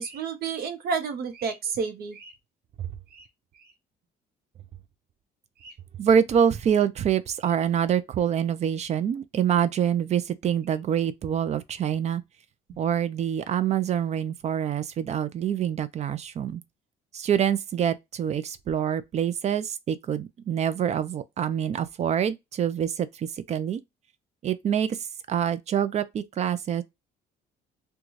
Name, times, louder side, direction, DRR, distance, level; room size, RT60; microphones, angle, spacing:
voice 1, 0.0-2.3 3.1-3.3 5.6-5.7, right 5 dB, 65° right, 0.8 m, -31 dB
voice 2, 6.0-12.2 12.8-16.6 17.1-23.8 24.4-25.0 25.3-26.8, right 9 dB, 40° right, 0.5 m, -26 dB
3.1 x 2.3 x 3.7 m
cardioid pair, 110°, 17 cm